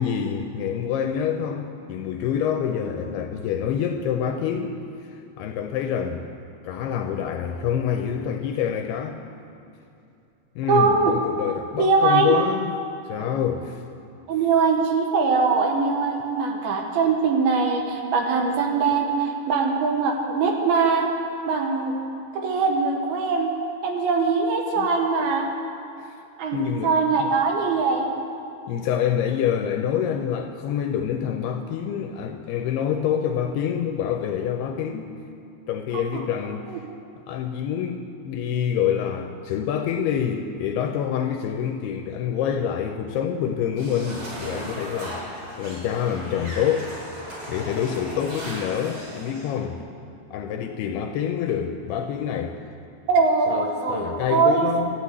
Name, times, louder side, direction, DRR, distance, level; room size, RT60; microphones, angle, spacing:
voice 1, 0.0-4.8 5.1-6.2 6.6-9.2 10.6-12.7 13.1-13.8 24.8-24.9 26.0-26.1 26.5-26.9 28.7-35.1 35.7-36.7 37.3-46.9 47.5-49.8 50.3-52.6 53.5-54.9, left 8 dB, 80° left, 5 dB, 2.4 m, -26 dB
voice 2, 10.7-11.1 11.8-12.3 14.3-21.1 21.5-22.0 22.3-23.5 23.8-25.5 26.4-28.1 35.9-36.2 53.1-54.7, right 4 dB, 70° right, 2 dB, 2.7 m, -22 dB
sound 1, 43.8-49.5, equal, 35° right, 4.9 m, -37 dB
13.0 x 9.8 x 8.2 m, 2.7 s
omnidirectional pair, 5.0 m